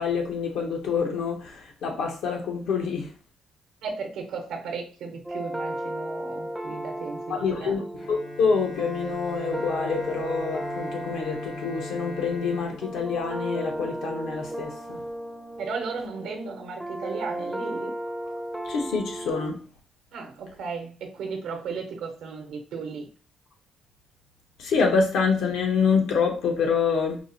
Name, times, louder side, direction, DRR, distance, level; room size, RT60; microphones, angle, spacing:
voice 1, 0.0-3.1 7.3-7.8 8.1-15.0 18.6-19.6 24.6-27.2, left 5 dB, 80° left, 2 dB, 0.8 m, -26 dB
voice 2, 3.8-7.8 15.6-17.9 20.1-23.1, right 5 dB, 85° right, 3 dB, 0.8 m, -35 dB
sound 1, 5.2-19.5, right 1 dB, 5° right, 0.4 m, -35 dB
Bowed string instrument, 8.0-14.0, left 4 dB, 60° left, 1.1 m, -41 dB
4.4 x 2.0 x 2.7 m, 0.41 s
cardioid pair, 90°, 0 cm